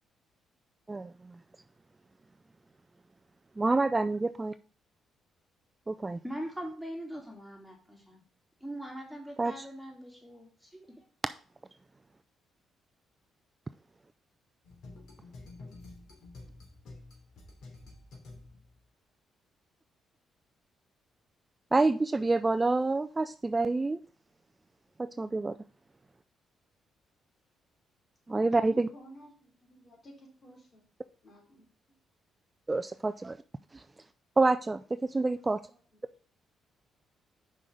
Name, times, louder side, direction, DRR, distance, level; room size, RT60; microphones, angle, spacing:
voice 1, 0.9-1.4 3.6-4.5 5.9-6.2 9.4-9.6 21.7-24.0 25.0-25.6 28.3-28.9 32.7-33.4 33.7-33.8 34.4-35.6, right 3 dB, 20° right, 0.3 m, -27 dB
voice 2, 6.2-8.2 8.6-11.0, equal, ahead, 3.0 m, -42 dB
sound 1, 14.6-18.8, left 2 dB, 70° left, 2.9 m, -50 dB
voice 3, 28.5-30.8 31.2-32.0 35.3-36.0, equal, 45° left, 3.3 m, -54 dB
5.9 x 5.3 x 6.3 m
cardioid pair, 90°, 0 cm